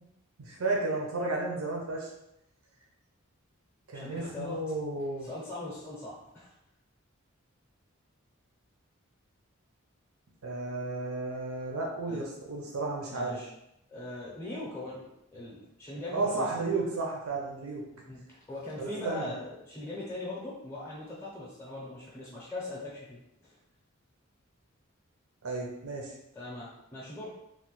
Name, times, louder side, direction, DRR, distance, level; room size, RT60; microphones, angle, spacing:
voice 1, 0.4-2.1 3.9-5.3 10.4-13.4 16.1-17.8 18.8-19.3 25.4-26.1, right 3 dB, 85° right, -1 dB, 0.6 m, -33 dB
voice 2, 3.9-4.6 5.1-6.5 12.1-12.2 13.1-13.5 13.9-16.8 18.0-23.6 26.3-27.4, left 2 dB, 15° left, -5 dB, 0.5 m, -41 dB
3.1 x 2.1 x 2.9 m, 0.83 s
head